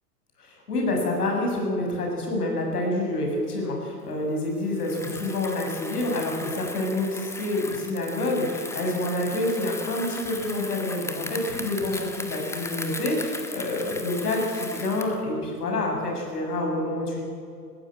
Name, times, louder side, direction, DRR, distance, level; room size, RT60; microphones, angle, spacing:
voice 1, 0.4-17.2, left 2 dB, 70° left, 0 dB, 7.7 m, -27 dB
Bicycle, 4.7-15.2, left 2 dB, 5° left, 1.8 m, -37 dB
21.5 x 15.5 x 9.0 m, 2.3 s
figure-of-eight pair, 105°, 48 cm